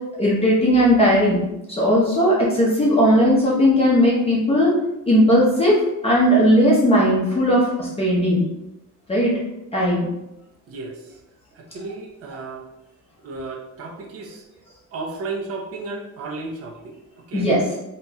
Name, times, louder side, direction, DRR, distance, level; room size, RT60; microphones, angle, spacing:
voice 1, 0.2-1.4 1.7-4.7 5.1-5.8 6.0-8.4 9.1-9.4 9.7-10.1 17.3-17.7, equal, 20° left, -5 dB, 0.7 m, -17 dB
voice 2, 10.7-11.2 11.5-12.6 13.2-14.4 14.9-17.5, right 3 dB, 50° right, 1 dB, 0.7 m, -34 dB
2.9 x 2.9 x 3.5 m, 0.88 s
cardioid pair, 165°, 31 cm